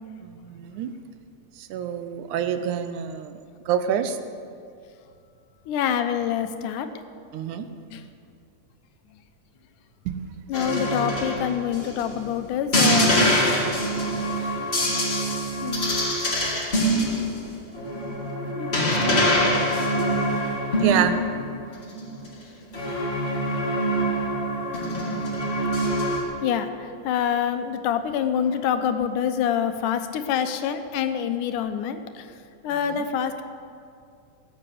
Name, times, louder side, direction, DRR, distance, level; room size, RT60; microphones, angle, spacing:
voice 1, 0.2-0.9 1.6-3.4 3.7-4.2 7.3-7.7 10.1-10.3 20.8-21.2 32.8-33.1, right 9 dB, 85° right, 9 dB, 2.3 m, -27 dB
voice 2, 5.7-6.9 7.9-8.0 9.1-9.2 10.5-13.3 15.6-16.0 18.5-19.2 21.7-21.8 24.2-24.3 26.4-32.3 32.6-33.4, left 8 dB, 90° left, 8 dB, 2.4 m, -26 dB
sound 1, 10.5-12.2 12.7-21.6 21.9-22.3 22.7-26.2, equal, 25° left, 2.0 m, -24 dB
18.0 x 8.1 x 7.8 m, 2.4 s
omnidirectional pair, 3.5 m